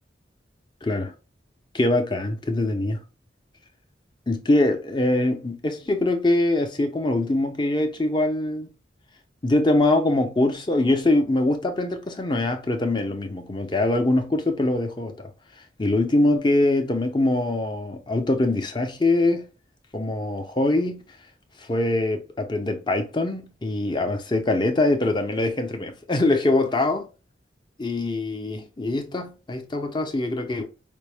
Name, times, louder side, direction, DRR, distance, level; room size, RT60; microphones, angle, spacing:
voice 1, 0.8-1.1 1.7-3.0 4.3-8.7 9.4-15.3 15.8-19.5 19.9-21.0 21.6-27.1 27.8-30.7, left 2 dB, 25° left, 0.7 m, -23 dB
5.2 x 2.1 x 3.3 m
head